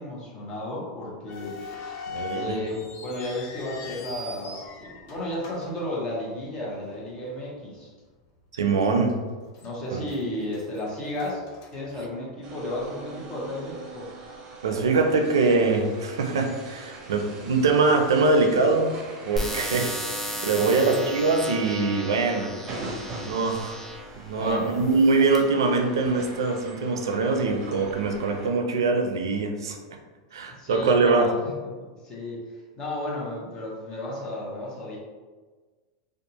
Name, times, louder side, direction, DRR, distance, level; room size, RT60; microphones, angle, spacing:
voice 1, 0.0-1.6 2.3-7.9 9.6-11.4 11.7-14.1 20.8-21.0 24.3-24.8 30.5-31.3 31.6-31.7 32.0-32.4 32.8-35.0, left 1 dB, 30° left, -4 dB, 1.0 m, -33 dB
sound 1, 1.3-6.6 6.9-7.0 7.7-7.9 8.4-8.5 9.1-9.7 10.0-12.5, left 4 dB, 55° left, 0.6 m, -41 dB
voice 2, 2.1-2.6 8.5-9.2 9.9-10.0 14.6-18.9 19.2-19.9 20.4-22.5 23.3-23.8 24.2-29.8 30.3-31.3, right 3 dB, 90° right, 4 dB, 0.4 m, -23 dB
sound 2, 12.4-28.5, right 3 dB, 35° right, 0.6 m, -42 dB
sound 3, 19.4-24.1 24.8-25.4, equal, 5° left, 0.5 m, -34 dB
2.6 x 2.3 x 2.8 m, 1.4 s
hypercardioid pair, 115°, 2 cm